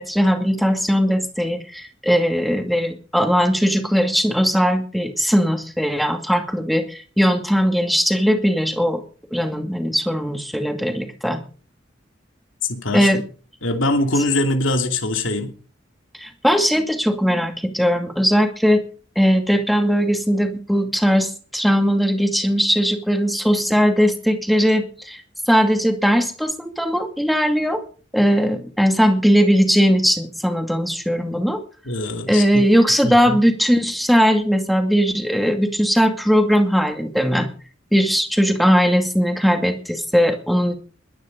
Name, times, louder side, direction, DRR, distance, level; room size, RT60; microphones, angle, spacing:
voice 1, 0.0-9.0 9.3-11.4 12.9-13.2 16.2-18.8 19.2-25.2 25.5-27.8 28.1-31.6 32.3-37.5 37.9-40.8, equal, ahead, 6 dB, 2.3 m, -19 dB
voice 2, 12.6-13.1 13.6-15.5 31.9-32.6 33.0-33.4, left 2 dB, 80° left, 5 dB, 2.8 m, -22 dB
21.5 x 10.5 x 5.3 m, 0.40 s
head